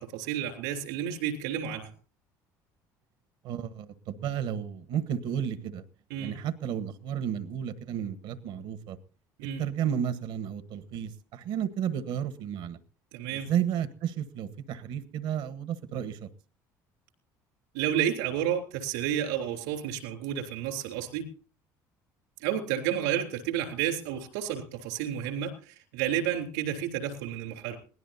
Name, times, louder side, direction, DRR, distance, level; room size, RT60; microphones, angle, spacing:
voice 1, 0.0-1.9 6.1-6.3 9.4-9.6 13.1-13.5 17.7-21.3 22.4-27.8, right 10 dB, 85° right, 5 dB, 3.5 m, -31 dB
voice 2, 3.4-5.9 6.2-9.0 9.6-12.8 13.3-16.3, right 9 dB, 70° right, 12 dB, 1.2 m, -32 dB
22.0 x 17.5 x 2.7 m, 0.40 s
supercardioid pair, 75°, 9 cm